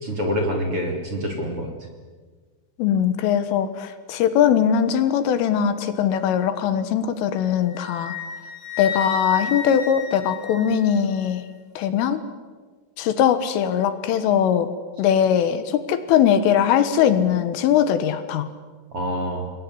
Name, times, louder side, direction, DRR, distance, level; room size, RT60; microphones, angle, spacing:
voice 1, 0.0-1.7 18.9-19.5, equal, 30° right, 2 dB, 3.4 m, -26 dB
voice 2, 2.8-8.2 8.8-11.5 11.8-12.2 13.0-14.7 15.0-18.5, left 9 dB, 75° left, 11 dB, 3.8 m, -20 dB
Wind instrument woodwind instrument, 7.7-11.2, left 4 dB, 45° left, 8.8 m, -32 dB
27.5 x 20.5 x 9.9 m, 1.4 s
omnidirectional pair, 5.9 m